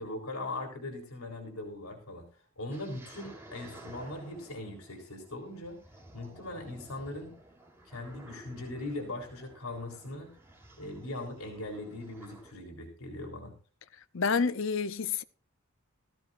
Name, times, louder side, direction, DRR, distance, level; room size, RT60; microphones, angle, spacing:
voice 1, 0.0-2.2 2.6-5.8 6.1-7.3 7.9-10.3 10.8-13.5, left 2 dB, 80° left, 3.7 m, -40 dB
sound 1, 2.7-12.5, right 1 dB, 10° right, 3.5 m, -52 dB
voice 2, 14.1-15.2, left 5 dB, 60° left, 0.7 m, -28 dB
16.5 x 15.0 x 2.6 m
head